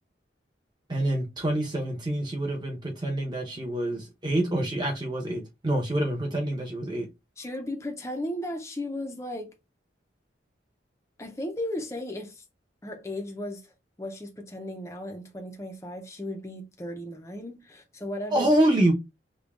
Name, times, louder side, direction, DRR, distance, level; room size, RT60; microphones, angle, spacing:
voice 1, 0.9-7.1 18.3-18.9, right 1 dB, 25° right, 0.8 m, -26 dB
voice 2, 7.4-9.5 11.2-12.4 12.8-13.7 14.0-18.5, left 1 dB, 15° left, 0.5 m, -35 dB
5.1 x 2.2 x 2.4 m
head